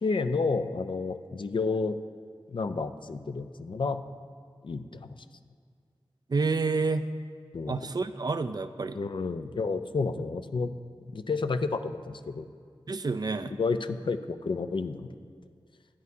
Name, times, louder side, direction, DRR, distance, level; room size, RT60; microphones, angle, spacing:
voice 1, 0.0-2.0 2.5-4.0 4.6-5.1 7.5-7.9 8.9-10.7 11.1-12.5 13.4-15.1, left 4 dB, 60° left, 9 dB, 0.4 m, -30 dB
voice 2, 6.3-7.1 7.7-9.0 12.9-13.6, right 4 dB, 45° right, 10 dB, 0.4 m, -29 dB
11.5 x 9.3 x 2.7 m, 2.2 s
wide cardioid pair, 70°, 9 cm